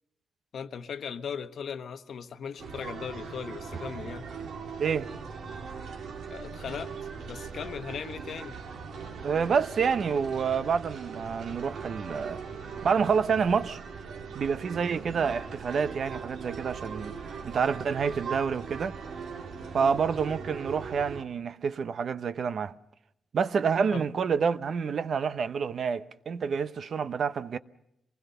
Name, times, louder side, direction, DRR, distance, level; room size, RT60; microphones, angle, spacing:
voice 1, 0.5-4.3 6.3-6.9 7.2-8.6 19.7-20.0 23.9-24.0, left 7 dB, 65° left, 1.1 m, -38 dB
sound 1, 2.6-21.2, right 5 dB, 85° right, 2.4 m, -40 dB
voice 2, 9.2-12.4 12.8-13.8 14.3-17.1 17.4-19.0 19.7-22.7 23.3-27.6, right 6 dB, 55° right, 0.8 m, -28 dB
26.5 x 20.0 x 6.8 m
wide cardioid pair, 140°, 0 cm